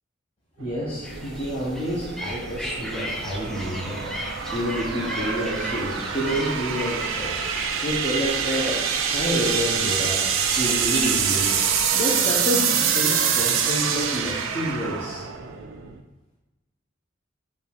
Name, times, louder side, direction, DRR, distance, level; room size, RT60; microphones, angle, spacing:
voice 1, 0.6-4.1 4.5-7.3 7.8-8.8 9.1-10.2 10.6-11.5 11.9-15.2, equal, 30° left, -8 dB, 0.7 m, -28 dB
sound 1, 0.6-16.0, right 7 dB, 85° right, 0.4 m, -26 dB
sound 2, 1.0-11.9, equal, ahead, 0.3 m, -36 dB
5.4 x 2.4 x 3.3 m, 1.1 s
head